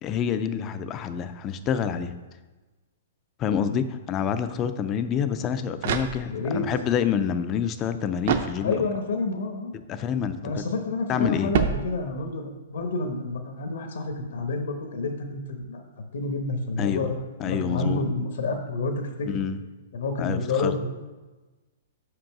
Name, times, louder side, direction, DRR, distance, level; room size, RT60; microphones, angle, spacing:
voice 1, 0.0-2.1 3.4-8.7 9.7-10.6 11.1-11.5 16.8-17.1 17.4-18.0 19.3-19.6 20.2-20.8, left 8 dB, 20° left, 10 dB, 0.3 m, -27 dB
sound 1, 5.4-6.7 8.2-9.1 11.5-12.4, right 7 dB, 45° right, 0.5 m, -28 dB
voice 2, 6.3-6.6 8.6-9.7 10.4-15.8 16.1-17.2 17.4-19.4 19.9-20.9, left 3 dB, 70° left, 4 dB, 1.0 m, -29 dB
5.3 x 5.1 x 5.9 m, 1.2 s
hypercardioid pair, 175°, 0 cm